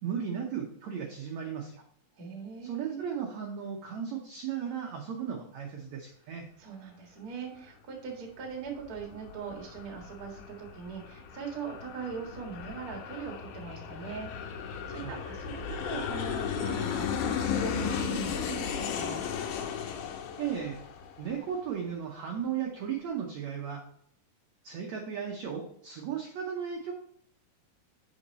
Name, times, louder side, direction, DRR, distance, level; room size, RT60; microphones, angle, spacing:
voice 1, 0.0-1.8 2.6-6.5 15.0-15.2 20.4-20.8 21.2-23.8 24.6-26.9, right 8 dB, 70° right, 1 dB, 1.7 m, -35 dB
voice 2, 2.2-3.0 6.6-19.2, right 5 dB, 40° right, 1 dB, 1.4 m, -41 dB
Aircraft, 8.5-21.7, left 7 dB, 80° left, 2.7 m, -35 dB
7.1 x 5.5 x 4.0 m, 0.65 s
omnidirectional pair, 4.2 m